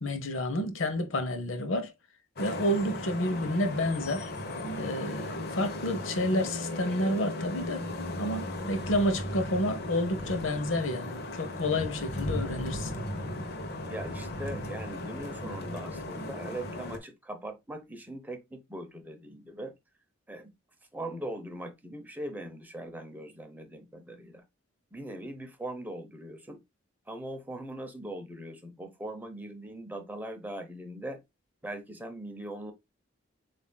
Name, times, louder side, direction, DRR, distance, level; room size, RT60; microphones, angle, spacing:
voice 1, 0.0-1.9 2.4-4.3 4.8-7.8 8.2-12.9, left 1 dB, 90° left, 0.8 m, -30 dB
Vehicle horn car horn honking / Traffic noise roadway noise, 2.4-17.0, left 1 dB, 55° left, 0.9 m, -36 dB
voice 2, 13.8-19.7 20.3-20.5 20.9-24.4 24.9-26.6 27.1-31.2 31.6-32.7, right 1 dB, 10° right, 0.7 m, -40 dB
7.2 x 2.6 x 2.2 m
head